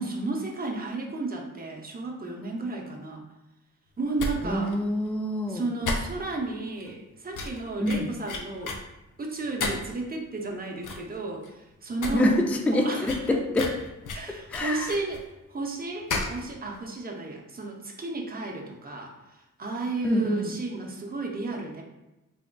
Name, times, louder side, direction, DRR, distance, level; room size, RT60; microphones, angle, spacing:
voice 1, 0.0-3.2 4.0-4.8 5.5-8.8 9.2-12.4 12.7-13.4 14.1-15.2 15.5-21.8, right 3 dB, 30° right, 1 dB, 0.6 m, -33 dB
sound 1, 4.2-4.3 4.6-4.7 5.1-5.2 5.8-6.4 6.8-6.9 7.3-8.8 9.6-10.0 10.4-10.5 10.8-11.1 11.4-11.5 11.9-12.1 12.4-12.5 13.0-15.2 16.1-16.4 16.7-16.8, left 3 dB, 75° left, 0.6 m, -32 dB
voice 2, 4.4-5.6 7.8-8.1 12.1-13.7 14.3-14.9 20.0-20.5, left 1 dB, 5° left, 3 dB, 0.3 m, -26 dB
3.7 x 3.5 x 2.2 m, 0.97 s
wide cardioid pair, 100°, 31 cm